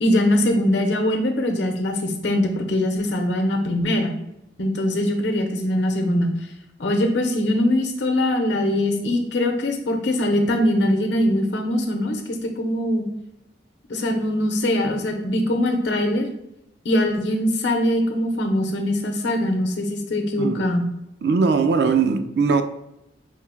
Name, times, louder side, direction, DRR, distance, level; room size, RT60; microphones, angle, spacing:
voice 1, 0.0-4.1 4.6-6.3 6.8-13.0 13.9-16.3 16.8-20.9, left 1 dB, 80° left, 0.7 m, -22 dB
voice 2, 20.4-20.7 21.2-22.6, right 5 dB, 65° right, 0.4 m, -20 dB
4.6 x 2.0 x 4.4 m
head